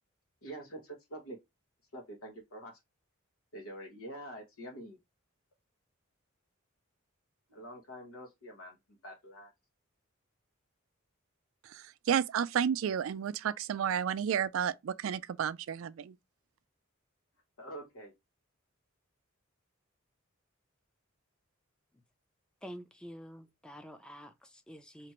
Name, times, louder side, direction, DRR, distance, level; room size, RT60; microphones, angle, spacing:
voice 1, 0.4-1.4 1.9-2.8 3.5-5.0 7.5-9.5 17.6-18.1, right 1 dB, 90° left, 1.0 m, -46 dB
voice 2, 11.6-16.2, right 8 dB, 70° right, 0.3 m, -32 dB
voice 3, 22.6-25.1, equal, 5° left, 0.4 m, -48 dB
2.9 x 2.5 x 4.3 m
head